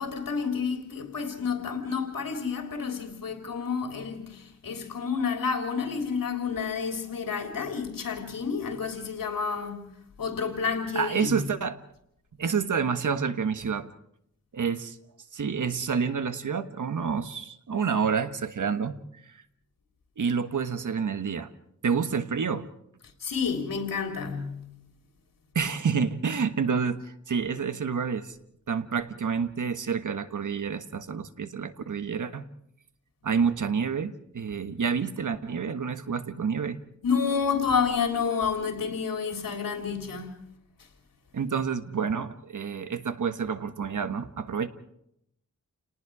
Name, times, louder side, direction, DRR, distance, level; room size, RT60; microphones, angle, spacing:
voice 1, 0.0-9.9 10.2-11.4 23.2-24.8 37.0-40.5, left 6 dB, 90° left, 3.5 m, -30 dB
voice 2, 10.9-11.8 12.4-13.9 14.5-15.0 15.3-19.0 19.3-19.4 20.2-21.5 21.8-22.7 25.5-28.4 28.7-32.5 33.2-36.8 41.3-44.7, right 6 dB, 65° right, 1.4 m, -28 dB
29.5 x 19.0 x 4.9 m
wide cardioid pair, 95°, 33 cm